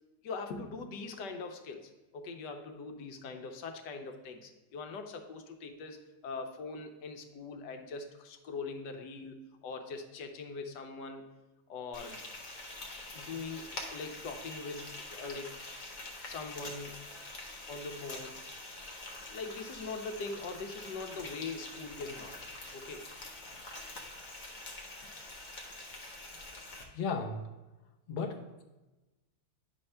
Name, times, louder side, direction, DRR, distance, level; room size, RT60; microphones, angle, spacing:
voice 1, 0.2-11.3 11.7-12.2 13.1-15.6 16.2-17.0 17.7-18.4 19.2-22.3 22.7-23.0, left 4 dB, 80° left, 5 dB, 1.3 m, -42 dB
Frying (food), 11.9-26.8, left 2 dB, 35° left, 0.9 m, -45 dB
voice 2, 26.9-27.4 28.1-28.6, left 4 dB, 50° left, 2 dB, 0.5 m, -35 dB
9.5 x 3.3 x 5.5 m, 1.1 s
omnidirectional pair, 1.9 m